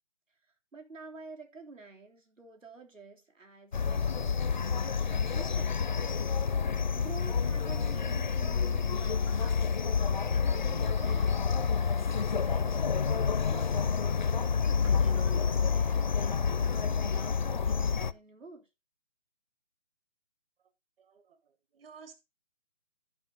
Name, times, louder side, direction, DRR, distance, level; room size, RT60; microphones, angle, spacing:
voice 1, 0.7-6.1 6.9-9.8 10.3-11.5 11.9-13.9 14.8-18.7, right 3 dB, 90° right, 3.4 m, -49 dB
sound 1, 3.7-18.1, left 6 dB, 40° left, 0.4 m, -28 dB
voice 2, 21.0-22.1, right 6 dB, 50° right, 1.5 m, -54 dB
14.0 x 5.6 x 3.8 m
figure-of-eight pair, 150°, 37 cm